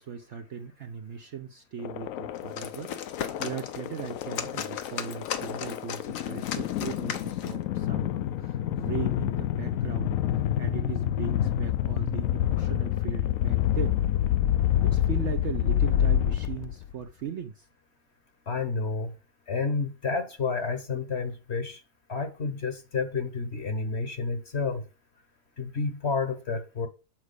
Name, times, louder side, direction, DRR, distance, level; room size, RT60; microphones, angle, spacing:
voice 1, 0.0-2.9 3.4-10.2 10.6-14.0 14.8-17.6, right 7 dB, 60° right, 0.8 m, -38 dB
sound 1, 1.8-16.9, left 11 dB, 70° left, 0.9 m, -28 dB
sound 2, 2.3-7.6, left 8 dB, 85° left, 1.4 m, -37 dB
voice 2, 18.5-19.2 19.5-21.8 22.1-24.8 25.6-26.9, left 4 dB, 45° left, 1.1 m, -30 dB
7.4 x 4.6 x 6.7 m
omnidirectional pair, 1.7 m